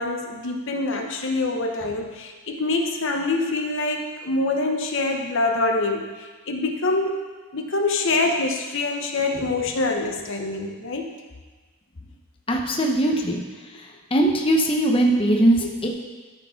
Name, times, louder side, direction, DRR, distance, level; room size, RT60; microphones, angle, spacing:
voice 1, 0.0-6.1 6.5-7.2 7.5-11.1 15.4-15.7, left 2 dB, 60° left, 3 dB, 1.0 m, -25 dB
voice 2, 12.5-13.4 14.1-15.9, right 1 dB, 25° left, 1 dB, 0.9 m, -20 dB
13.0 x 5.0 x 5.7 m, 1.3 s
head